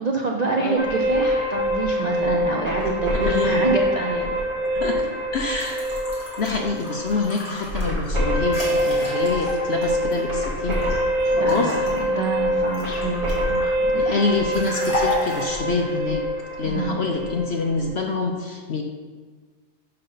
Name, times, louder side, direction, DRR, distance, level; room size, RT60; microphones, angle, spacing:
voice 1, 0.0-4.3 4.8-5.0 11.3-14.1 16.6-17.0, right 3 dB, 60° right, 0 dB, 0.4 m, -26 dB
sound 1, 0.8-17.9, equal, 90° right, 3.3 m, -25 dB
voice 2, 3.1-3.7 4.7-5.1 5.3-6.0 6.4-10.8 11.3-11.8 13.9-16.2 16.6-18.8, left 4 dB, 55° left, 2 dB, 0.7 m, -26 dB
sound 2, 5.5-11.0 11.5-13.6 14.5-15.4, left 1 dB, 35° left, 2.3 m, -32 dB
10.0 x 6.5 x 3.9 m, 1.5 s
omnidirectional pair, 1.8 m